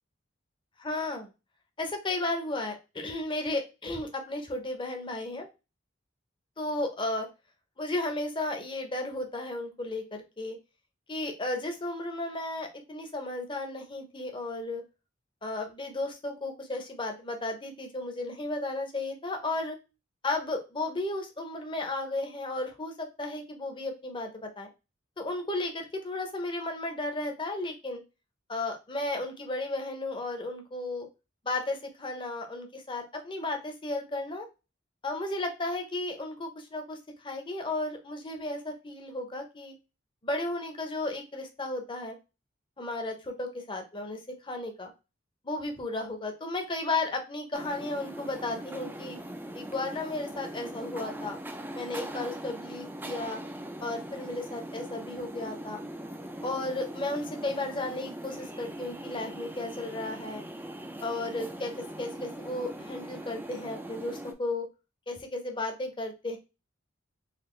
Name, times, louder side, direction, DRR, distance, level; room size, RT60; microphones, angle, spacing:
voice 1, 0.8-1.3 1.8-5.5 6.6-7.3 7.8-10.6 11.1-14.8 15.4-19.8 20.2-24.7 25.2-28.0 28.5-31.1 31.4-34.5 35.0-39.7 40.2-42.2 42.8-44.9 45.4-49.2 49.5-51.4 51.7-53.4 53.8-55.8 56.4-60.4 61.0-64.7 65.1-66.4, left 2 dB, 25° left, 4 dB, 0.8 m, -34 dB
sound 1, 47.5-64.3, right 1 dB, 10° right, 0.4 m, -41 dB
4.1 x 2.5 x 3.1 m, 0.28 s
head